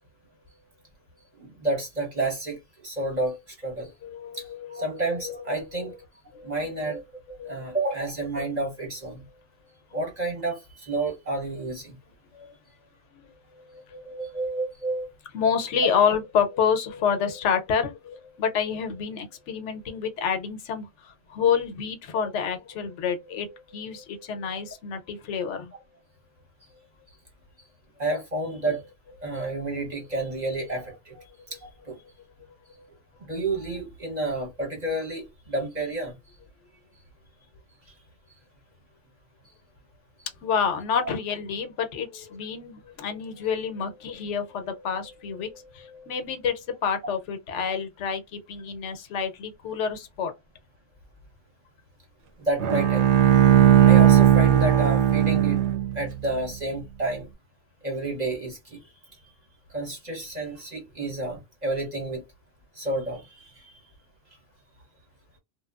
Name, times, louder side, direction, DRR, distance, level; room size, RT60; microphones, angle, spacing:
voice 1, 1.4-3.9 4.3-4.4 4.7-6.0 6.4-7.0 7.3-9.2 9.9-12.0 14.0-15.1 15.8-15.9 22.1-22.3 28.0-28.8 29.2-31.2 31.5-32.0 33.2-36.1 52.4-53.0 53.8-55.6 55.9-57.3 57.8-58.8 59.7-62.2 62.8-63.8, right 2 dB, 40° right, 0.8 m, -30 dB
voice 2, 4.0-5.6 6.3-6.8 7.4-7.9 13.1-13.3 13.7-14.6 15.3-20.9 21.3-25.7 40.4-50.3, left 7 dB, 85° left, 0.9 m, -28 dB
Bowed string instrument, 52.6-56.1, right 10 dB, 75° right, 0.9 m, -17 dB
2.9 x 2.2 x 2.2 m
omnidirectional pair, 1.2 m